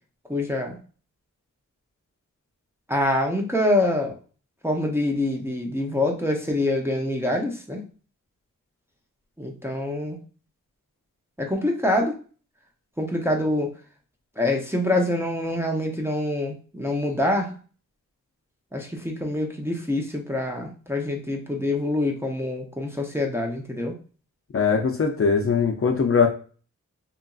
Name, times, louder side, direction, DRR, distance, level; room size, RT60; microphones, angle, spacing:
voice 1, 0.3-0.8 2.9-4.1 4.6-7.8 9.4-10.2 11.4-12.1 13.0-13.7 14.4-17.5 18.7-23.9, left 1 dB, 10° right, 0 dB, 0.5 m, -25 dB
voice 2, 24.5-26.3, left 5 dB, 45° left, 3 dB, 0.5 m, -21 dB
2.9 x 2.5 x 2.3 m, 0.38 s
wide cardioid pair, 70°, 32 cm